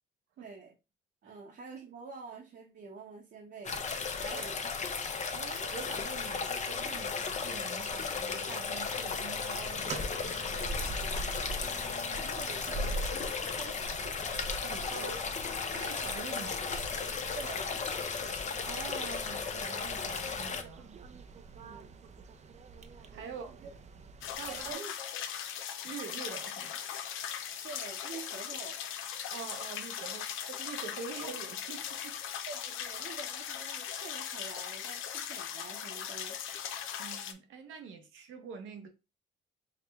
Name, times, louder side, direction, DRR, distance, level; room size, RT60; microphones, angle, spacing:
voice 1, 0.4-0.7 1.2-3.8 4.3-4.7 11.6-13.0 13.6-13.8 14.0-14.2 15.0-15.5 17.3-17.8 21.5-21.9 23.2-23.7 24.4-24.9 27.6-28.8 32.5-36.4, right 4 dB, 55° right, 0.9 m, -47 dB
sound 1, 3.6-20.6, left 5 dB, 35° left, 0.7 m, -35 dB
voice 2, 4.2-4.5 5.3-10.6 14.6-15.2 15.7-16.7 18.6-21.0 23.0-23.6 24.3-24.8 25.8-26.8 29.3-32.2 37.0-38.9, right 6 dB, 85° right, 0.9 m, -45 dB
sound 2, 9.6-24.7, right 2 dB, 35° right, 0.5 m, -43 dB
sound 3, 24.2-37.3, left 9 dB, 90° left, 0.6 m, -39 dB
4.8 x 2.1 x 3.4 m
cardioid pair, 90°, 20 cm